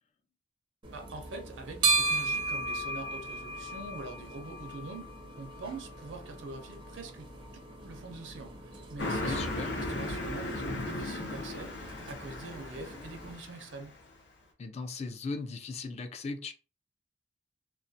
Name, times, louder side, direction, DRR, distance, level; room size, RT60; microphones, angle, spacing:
sound 1, 0.8-13.3, right 3 dB, 25° right, 0.5 m, -36 dB
voice 1, 0.9-7.3 7.8-13.9, right 3 dB, 80° right, 0.5 m, -44 dB
Car passing by, 9.0-13.9, left 2 dB, 65° left, 0.6 m, -36 dB
voice 2, 9.1-9.8 14.6-16.5, left 3 dB, 35° left, 0.3 m, -38 dB
2.3 x 2.1 x 2.6 m
head